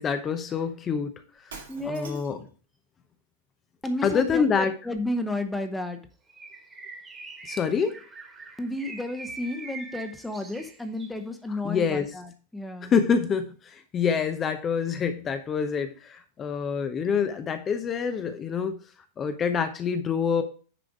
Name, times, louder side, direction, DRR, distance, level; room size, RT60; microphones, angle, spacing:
voice 1, 0.0-1.5 1.8-2.4 4.0-4.7 7.4-8.0 11.6-12.1 12.8-18.8 19.2-20.4, left 6 dB, 25° left, 8 dB, 0.8 m, -26 dB
Shatter, 1.4-2.5, right 4 dB, 65° right, 2.3 m, -44 dB
voice 2, 1.7-2.2 3.8-6.0 8.6-12.9, left 1 dB, 5° left, 6 dB, 1.1 m, -32 dB
Bird, 6.3-11.2, right 3 dB, 15° right, 1.7 m, -43 dB
10.0 x 4.9 x 4.7 m, 0.38 s
figure-of-eight pair, 90°, 0 cm